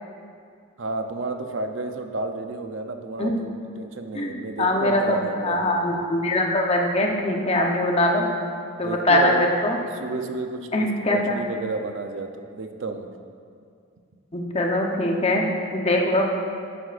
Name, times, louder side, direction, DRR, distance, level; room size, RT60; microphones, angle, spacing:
voice 1, 0.8-5.9 8.8-9.5 10.0-10.9 11.1-13.1, right 3 dB, 60° right, 6 dB, 0.6 m, -31 dB
voice 2, 4.1-8.3 8.8-9.8 10.7-11.4 14.3-16.3, left 1 dB, 30° left, 1 dB, 0.9 m, -22 dB
11.0 x 9.8 x 2.5 m, 2.3 s
head